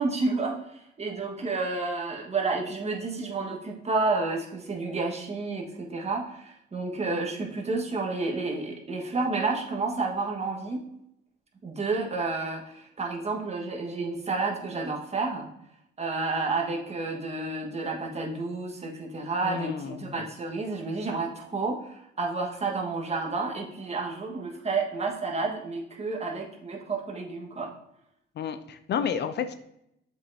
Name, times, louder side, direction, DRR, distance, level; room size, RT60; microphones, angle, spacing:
voice 1, 0.0-10.8 11.6-15.5 16.0-27.7, right 3 dB, 35° right, 0 dB, 1.5 m, -30 dB
voice 2, 19.4-20.3 28.4-29.5, left 7 dB, 60° left, 10 dB, 0.5 m, -31 dB
7.1 x 5.4 x 2.7 m, 0.79 s
cardioid pair, 90°, 20 cm